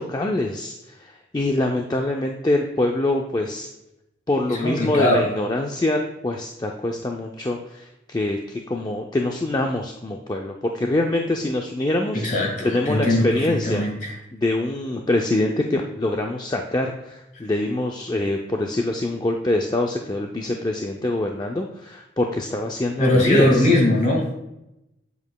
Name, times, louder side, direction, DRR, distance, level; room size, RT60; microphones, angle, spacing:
voice 1, 0.0-3.7 4.3-12.2 12.6-13.8 14.3-23.7, left 1 dB, 20° left, 2 dB, 0.4 m, -24 dB
voice 2, 4.5-5.3 12.1-14.1 23.0-24.3, left 1 dB, 40° left, 0 dB, 1.8 m, -20 dB
8.0 x 7.3 x 2.3 m, 0.89 s
head